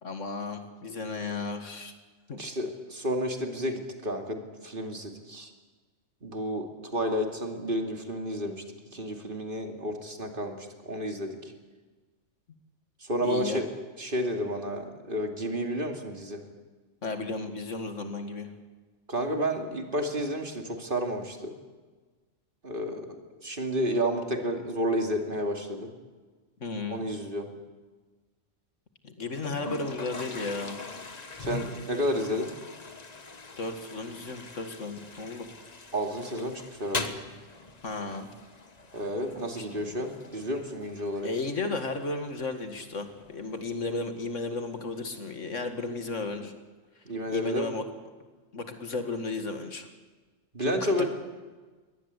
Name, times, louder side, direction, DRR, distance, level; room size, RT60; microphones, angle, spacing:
voice 1, 0.0-1.9 2.3-2.4 13.2-13.6 17.0-18.5 26.6-27.1 29.0-30.8 33.6-35.5 37.8-38.3 39.6-39.7 41.2-46.5 47.3-47.8 48.5-49.9 50.6-51.1, left 3 dB, 80° left, 7 dB, 2.4 m, -34 dB
voice 2, 2.4-5.5 6.2-8.6 8.9-11.5 13.0-13.7 14.0-16.4 19.1-21.5 22.6-23.2 23.4-25.9 26.9-27.5 31.4-32.5 35.9-37.2 38.9-41.3 47.1-47.7 50.5-51.1, equal, 45° right, 4 dB, 2.6 m, -31 dB
Toilet flush, 29.4-46.4, left 3 dB, 35° left, 1.4 m, -43 dB
22.5 x 19.0 x 8.3 m, 1.4 s
omnidirectional pair, 1.3 m